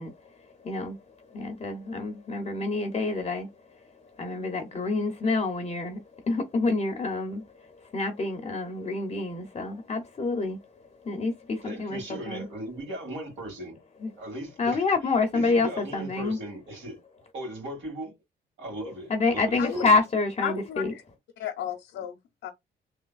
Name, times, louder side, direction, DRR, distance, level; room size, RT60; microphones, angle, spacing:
voice 1, 0.0-10.6 11.0-12.5 14.0-14.1 14.6-16.4 19.1-20.9, left 3 dB, 30° left, 0.7 m, -28 dB
voice 2, 11.6-13.8 14.2-14.8 15.3-17.0 17.3-18.1 18.6-19.9, right 1 dB, 75° right, 2.3 m, -37 dB
voice 3, 20.4-20.9 21.4-22.2 22.4-22.5, left 9 dB, 75° left, 0.7 m, -33 dB
3.2 x 2.8 x 2.4 m
cardioid pair, 90°, 20 cm